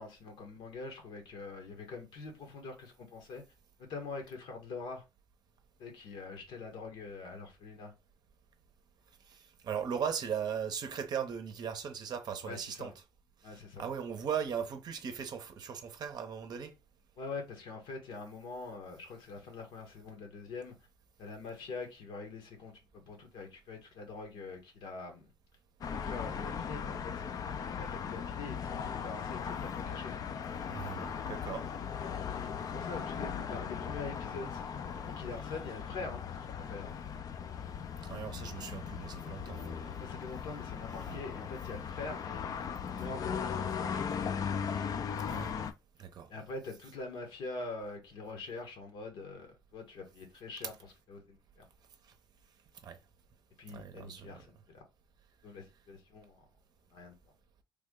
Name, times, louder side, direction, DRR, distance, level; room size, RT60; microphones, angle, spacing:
voice 1, 0.0-3.4 3.8-5.0 5.8-7.9 12.4-12.9 13.4-13.8 17.2-20.7 21.2-25.3 25.9-27.2 27.7-30.2 32.7-34.6 35.0-36.9 40.0-42.6 42.9-44.1 46.3-50.7 51.1-51.6 53.6-54.8 55.4-56.4 56.9-57.1, left 3 dB, 80° left, 1.2 m, -44 dB
voice 2, 9.3-12.9 13.4-16.7 30.7-31.7 38.0-40.0 41.0-41.2 45.3-45.5 46.0-46.3 52.8-53.0 53.7-54.4, right 7 dB, 55° right, 0.6 m, -38 dB
sound 1, 25.8-45.7, left 7 dB, 45° left, 0.4 m, -38 dB
3.4 x 2.1 x 3.6 m
cardioid pair, 100°, 8 cm